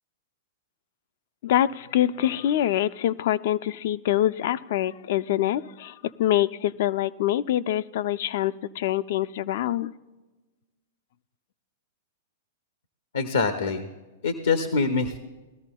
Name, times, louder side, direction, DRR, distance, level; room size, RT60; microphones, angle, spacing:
voice 1, 1.4-9.9, left 12 dB, 60° left, 14 dB, 0.4 m, -25 dB
voice 2, 13.1-13.9 14.2-15.2, left 4 dB, 80° left, 7 dB, 0.9 m, -24 dB
20.5 x 13.5 x 2.2 m, 1.2 s
hypercardioid pair, 105°, 0 cm